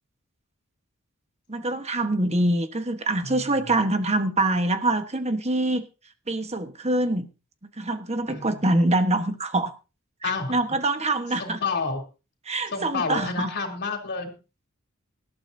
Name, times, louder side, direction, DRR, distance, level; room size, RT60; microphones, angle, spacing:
voice 1, 1.5-5.9 6.3-7.3 7.8-9.7 10.2-11.6 12.5-13.5, right 2 dB, 30° right, 1.3 m, -25 dB
voice 2, 8.3-8.7 10.2-10.6 11.4-12.0 12.7-14.4, left 4 dB, 50° left, 3.3 m, -29 dB
19.0 x 12.5 x 2.7 m
head